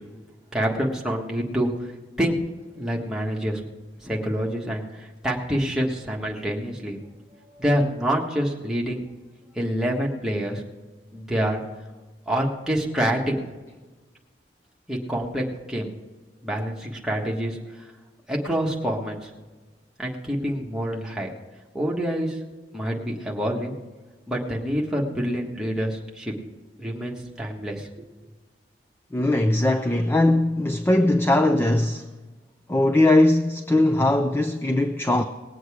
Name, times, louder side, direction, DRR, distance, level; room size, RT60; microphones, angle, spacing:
voice 1, 0.5-1.9 2.2-2.4 2.8-3.6 4.0-7.0 7.5-9.0 9.5-10.6 11.1-11.6 12.3-13.4 14.9-15.9 16.4-17.9 18.3-19.3 20.0-21.3 21.7-22.4 22.7-23.7 24.3-26.3 26.8-28.1, equal, 5° right, 1.4 m, -27 dB
voice 2, 29.1-32.1 32.7-35.2, left 1 dB, 10° left, 0.4 m, -20 dB
19.5 x 7.9 x 4.9 m
head